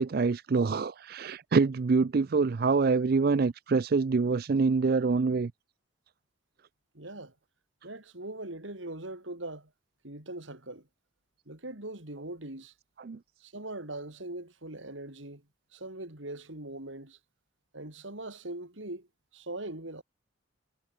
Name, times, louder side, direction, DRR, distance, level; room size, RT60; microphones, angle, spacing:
voice 1, 0.0-5.5 13.0-13.2, right 4 dB, 50° right, 0.4 m, -25 dB
voice 2, 6.9-7.3 7.8-9.7 10.0-10.9 11.5-12.7 13.4-15.4 15.7-17.2 17.7-20.0, right 2 dB, 70° right, 4.0 m, -41 dB
head